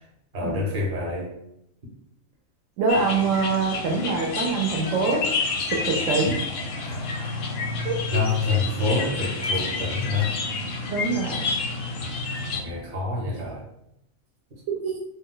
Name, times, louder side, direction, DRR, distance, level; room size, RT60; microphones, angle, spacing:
voice 1, 0.3-1.3 8.1-10.3 12.5-13.6, left 3 dB, 45° right, -2 dB, 0.9 m, -26 dB
voice 2, 2.8-5.2 5.7-6.4 6.8-6.9 7.8-8.2 10.9-11.5 14.7-14.9, right 4 dB, 75° right, -1 dB, 0.9 m, -25 dB
sound 1, 2.9-12.6, left 3 dB, 65° left, 0.6 m, -29 dB
2.4 x 2.2 x 3.7 m, 0.81 s
omnidirectional pair, 1.4 m